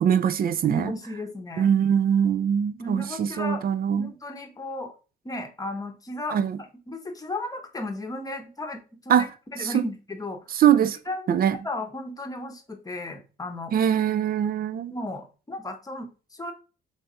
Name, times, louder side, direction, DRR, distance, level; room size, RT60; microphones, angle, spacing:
voice 1, 0.0-0.9 1.6-4.1 6.3-6.6 9.1-9.3 9.6-9.8 10.5-11.0 11.3-11.6 13.7-14.9, right 9 dB, 50° right, 0.4 m, -22 dB
voice 2, 0.7-1.7 2.8-3.6 4.0-4.9 5.2-6.4 6.9-10.4 11.1-11.3 11.6-13.8 14.9-16.5, left 2 dB, 20° left, 0.8 m, -34 dB
3.4 x 2.4 x 4.2 m
cardioid pair, 90°, 20 cm